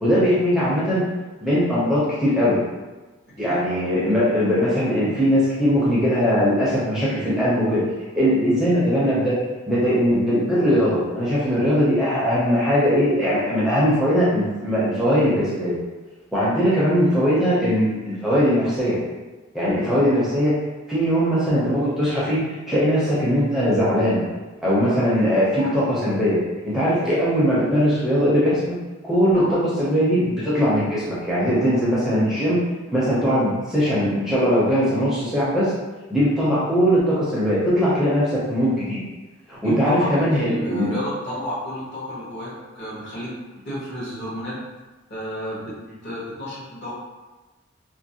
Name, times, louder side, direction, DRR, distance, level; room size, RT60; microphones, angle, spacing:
voice 1, 0.0-1.0 1.4-2.6 3.4-7.8 8.1-9.4 9.7-15.8 16.3-19.0 19.5-20.5 20.9-24.2 24.6-26.4 26.6-28.8 29.0-32.6 32.9-35.7 36.1-39.0 39.5-40.9, equal, ahead, -9 dB, 0.4 m, -20 dB
voice 2, 39.6-43.3 43.6-44.6 45.1-45.8 46.0-46.9, equal, 55° left, -7 dB, 0.9 m, -31 dB
2.4 x 2.0 x 2.7 m, 1.2 s
head